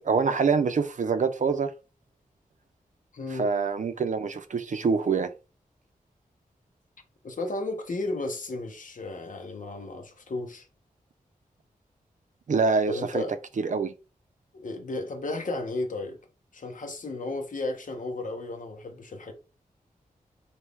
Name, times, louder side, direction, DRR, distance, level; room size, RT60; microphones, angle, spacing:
voice 1, 0.0-1.7 3.3-5.3 12.5-13.2 13.6-13.9, right 5 dB, 60° right, 0.5 m, -25 dB
voice 2, 3.1-3.5 7.2-10.7 12.9-13.3 14.5-16.2 16.5-19.3, left 2 dB, 65° left, 0.9 m, -34 dB
3.1 x 2.7 x 3.4 m
cardioid pair, 60°, 15 cm